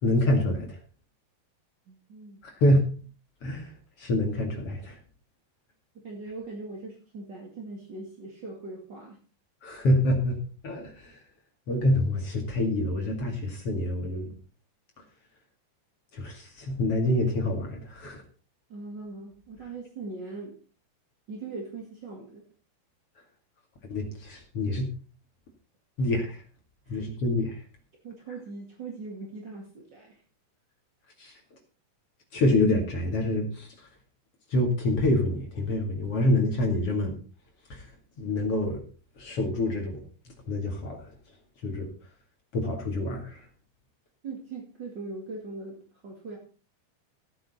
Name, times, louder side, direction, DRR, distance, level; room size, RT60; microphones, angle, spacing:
voice 1, 0.0-0.8 2.4-2.8 3.4-3.7 4.0-5.0 9.6-10.4 10.6-11.2 11.7-14.3 16.1-18.2 23.8-24.9 26.0-26.4 26.9-27.6 31.2-31.3 32.3-33.7 34.5-37.1 37.7-37.9 38.2-38.8 39.2-40.0 40.5-41.1 41.6-41.9 42.5-43.4, left 1 dB, 40° left, 2 dB, 2.5 m, -26 dB
voice 2, 1.9-2.4 5.9-9.2 18.7-20.6 21.3-22.4 26.8-27.0 28.0-30.2 44.2-45.8 46.0-46.4, right 3 dB, 40° right, 0 dB, 1.7 m, -40 dB
16.0 x 8.9 x 4.2 m, 0.37 s
omnidirectional pair, 5.0 m